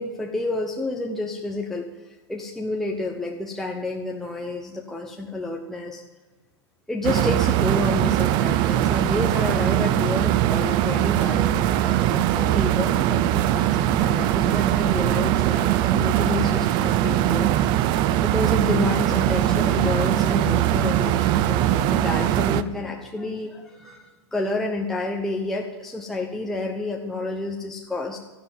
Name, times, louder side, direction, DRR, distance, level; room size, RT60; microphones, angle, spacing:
voice 1, 0.0-6.0 6.9-17.5 18.2-28.2, left 2 dB, ahead, 0 dB, 1.1 m, -30 dB
sound 1, 7.0-22.6, right 12 dB, 30° right, 0.7 m, -21 dB
13.0 x 11.5 x 8.9 m, 1.1 s
hypercardioid pair, 140°, 15 cm